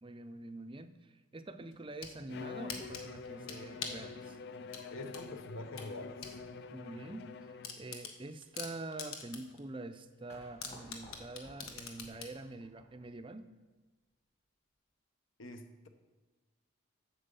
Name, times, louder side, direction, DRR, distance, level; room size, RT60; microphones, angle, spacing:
voice 1, 0.0-4.4 6.7-13.5, right 2 dB, 25° right, 9 dB, 0.5 m, -46 dB
sound 1, 1.7-2.2 2.7-4.1 4.7-6.4 6.7-6.8 7.2-7.3 7.6-9.6 9.9-10.0 10.6-12.4, left 6 dB, 85° left, 1.4 m, -43 dB
Bowed string instrument, 2.3-7.9, left 4 dB, 50° left, 0.4 m, -46 dB
voice 2, 4.9-6.2 15.4-15.9, left 2 dB, 65° left, 6 dB, 1.0 m, -45 dB
sound 2, 10.3-13.3, left 1 dB, 35° left, 1.9 m, -57 dB
8.8 x 7.4 x 6.9 m, 1.2 s
head